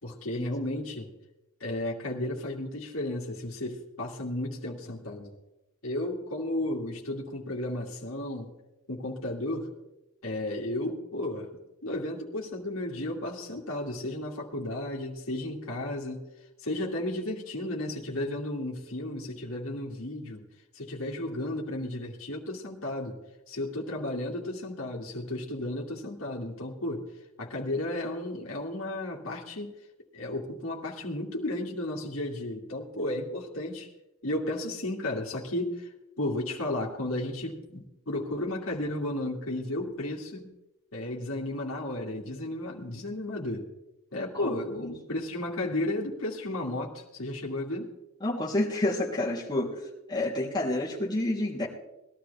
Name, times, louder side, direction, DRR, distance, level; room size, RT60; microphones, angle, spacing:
voice 1, 0.0-1.1 1.6-5.3 5.8-8.5 8.9-9.7 10.2-11.5 11.8-16.2 16.6-20.4 20.7-23.2 23.5-27.0 27.4-29.7 30.1-33.9 34.2-35.9 36.2-40.5 40.9-43.7 44.1-47.9, left 1 dB, 70° left, -2 dB, 2.3 m, -33 dB
voice 2, 48.2-49.8 50.1-51.7, left 1 dB, 20° left, -5 dB, 3.3 m, -29 dB
20.5 x 13.0 x 3.5 m, 0.95 s
head